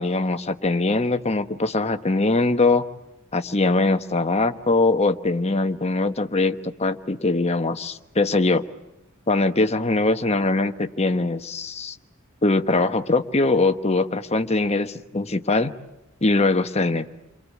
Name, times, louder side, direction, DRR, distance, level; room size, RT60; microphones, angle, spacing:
voice 1, 0.0-2.8 3.3-8.6 9.3-12.0 12.4-15.7 16.2-17.1, left 2 dB, 30° left, 8 dB, 1.1 m, -22 dB
29.0 x 23.0 x 8.4 m, 0.92 s
head